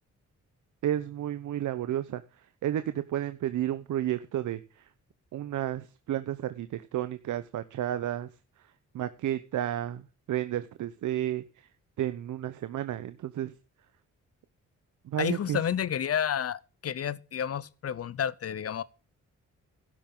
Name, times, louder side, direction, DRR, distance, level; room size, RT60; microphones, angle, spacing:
voice 1, 0.8-4.9 5.3-8.3 8.6-11.7 12.0-13.5 15.0-15.7, right 12 dB, 75° right, 0.9 m, -32 dB
voice 2, 15.2-18.8, left 9 dB, 50° left, 0.8 m, -30 dB
12.0 x 11.5 x 3.8 m
cardioid pair, 80°, 31 cm